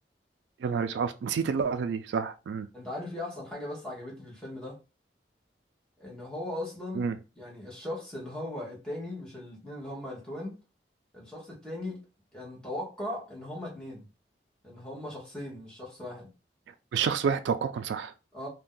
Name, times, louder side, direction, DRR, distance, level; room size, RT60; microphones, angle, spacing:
voice 1, 0.6-2.7 6.9-7.2 16.9-18.1, right 6 dB, 90° right, 0.3 m, -29 dB
voice 2, 2.7-4.8 6.0-7.1 7.4-10.6 11.1-12.0 12.3-14.1 14.6-16.3 18.3-18.5, left 1 dB, 5° left, 1.0 m, -38 dB
2.6 x 2.2 x 3.7 m
head